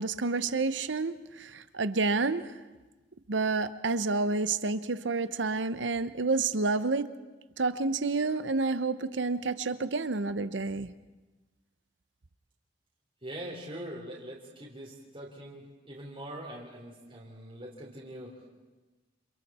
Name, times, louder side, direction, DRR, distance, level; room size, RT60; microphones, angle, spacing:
voice 1, 0.0-2.5 3.3-7.1 7.6-10.9, right 3 dB, 85° right, 13 dB, 0.9 m, -29 dB
voice 2, 13.2-18.5, right 1 dB, 30° right, -5 dB, 3.5 m, -43 dB
29.5 x 27.5 x 4.3 m, 1.2 s
head